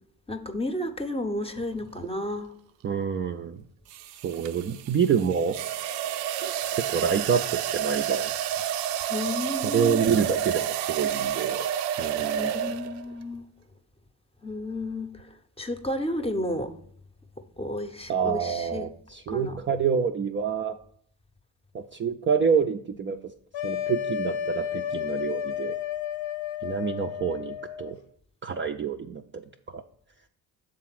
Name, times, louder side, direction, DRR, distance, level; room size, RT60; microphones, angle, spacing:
voice 1, 0.3-2.5 9.1-10.0 12.3-13.4 14.4-15.1 15.6-16.7 17.6-18.9 19.3-19.6, left 1 dB, 15° left, 8 dB, 0.7 m, -32 dB
sound 1, 2.0-2.2 3.9-13.1, right 10 dB, 80° right, 0.5 m, -30 dB
voice 2, 2.8-3.6 4.2-5.6 6.4-8.3 9.6-11.7 12.0-12.5 18.1-20.8 21.7-23.2 23.6-25.8 26.6-28.0 28.4-29.4 29.7-29.8, right 6 dB, 25° right, 5 dB, 0.4 m, -27 dB
sound 2, 23.5-27.9, left 10 dB, 70° left, 0.8 m, -32 dB
7.0 x 3.7 x 5.9 m, 0.65 s
hypercardioid pair, 55°, 46 cm